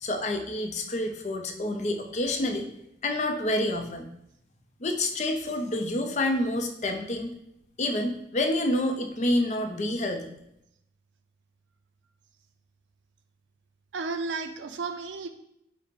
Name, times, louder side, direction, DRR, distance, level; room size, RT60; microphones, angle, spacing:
voice 1, 0.0-2.7 3.0-4.1 4.8-7.4 7.8-10.3, left 1 dB, 40° left, 5 dB, 0.4 m, -28 dB
voice 2, 13.9-15.3, right 4 dB, 85° right, 8 dB, 0.4 m, -33 dB
5.2 x 2.0 x 4.1 m, 0.78 s
head